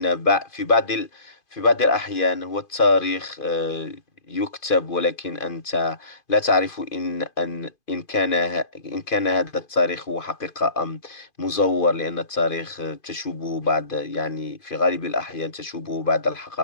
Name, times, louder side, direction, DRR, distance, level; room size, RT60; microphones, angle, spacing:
voice 1, 0.0-4.0 4.3-16.6, left 3 dB, 45° left, 2.9 m, -24 dB
omnidirectional pair, 1.2 m